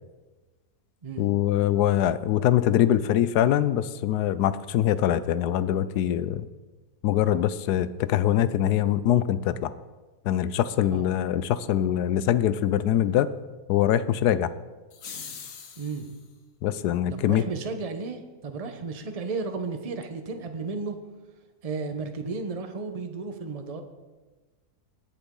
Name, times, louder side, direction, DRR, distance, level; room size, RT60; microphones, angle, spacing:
voice 1, 1.2-6.5 7.0-9.7 10.2-13.3 13.7-14.5 16.6-17.4, left 11 dB, 80° left, 15 dB, 1.1 m, -23 dB
sound 1, 14.9-16.2, left 6 dB, 60° left, 1.3 m, -41 dB
voice 2, 15.8-16.1 17.1-21.0 21.6-23.8, right 4 dB, 30° right, 6 dB, 0.8 m, -33 dB
20.0 x 7.1 x 3.8 m, 1.2 s
omnidirectional pair, 1.7 m